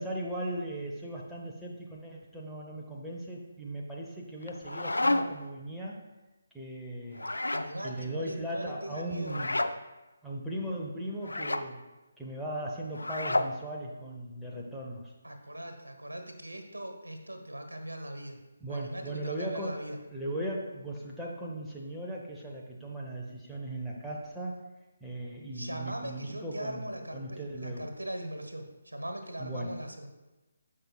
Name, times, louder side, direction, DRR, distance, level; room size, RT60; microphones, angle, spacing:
voice 1, 0.0-6.0 6.5-7.3 7.8-9.6 10.2-11.8 12.2-15.1 18.6-19.8 20.1-24.6 25.0-27.8 29.4-30.1, right 1 dB, ahead, -5 dB, 0.8 m, -38 dB
sound 1, 4.4-5.5 7.1-7.7 9.2-9.7 11.2-11.7 12.9-13.5, left 2 dB, 75° left, 0.4 m, -30 dB
voice 2, 7.5-9.4 15.2-18.4 18.7-20.0 25.5-30.1, right 1 dB, 75° right, 5 dB, 1.2 m, -40 dB
14.5 x 5.4 x 2.3 m, 1.1 s
figure-of-eight pair, 145°, 0 cm